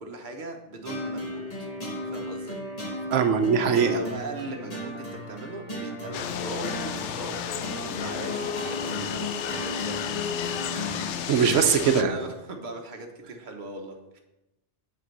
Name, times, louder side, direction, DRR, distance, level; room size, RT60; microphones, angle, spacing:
voice 1, 0.0-1.7 2.0-2.6 3.6-11.2 11.6-14.2, right 2 dB, 45° right, 3 dB, 1.2 m, -39 dB
sound 1, 0.8-11.1, left 1 dB, 30° left, 2.2 m, -35 dB
voice 2, 3.1-4.0 11.3-12.2, right 7 dB, 85° right, 7 dB, 1.0 m, -21 dB
sound 2, 6.1-12.0, left 10 dB, 75° left, 0.9 m, -33 dB
7.5 x 4.5 x 6.6 m, 0.93 s
omnidirectional pair, 1.2 m